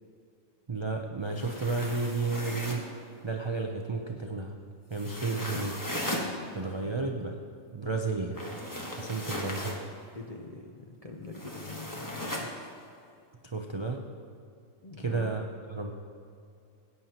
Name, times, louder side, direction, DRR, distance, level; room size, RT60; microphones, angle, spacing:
voice 1, 0.7-2.8 3.2-4.6 4.9-5.8 6.5-7.3 7.7-8.4 9.0-9.8 13.4-14.0 15.0-15.9, right 3 dB, 45° right, 2 dB, 0.3 m, -32 dB
sound 1, 1.3-2.9 4.9-6.3 8.3-9.8 11.3-12.5, left 1 dB, 15° left, 1.1 m, -37 dB
voice 2, 10.1-12.7 14.8-15.4, left 2 dB, 45° left, 2 dB, 0.5 m, -44 dB
17.0 x 9.1 x 2.9 m, 2.4 s
omnidirectional pair, 1.4 m